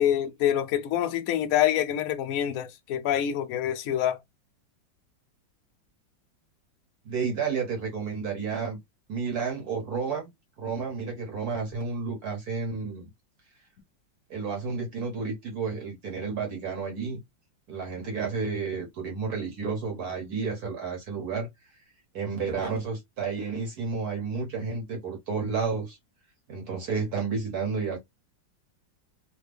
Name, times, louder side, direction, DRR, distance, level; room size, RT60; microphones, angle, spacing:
voice 1, 0.0-4.2, left 11 dB, 70° left, 0.8 m, -26 dB
voice 2, 7.0-8.8 9.1-10.3 10.6-13.1 14.3-17.2 17.7-21.5 22.1-26.0 26.5-28.0, right 5 dB, 55° right, 1.4 m, -31 dB
3.4 x 2.2 x 3.3 m
omnidirectional pair, 2.1 m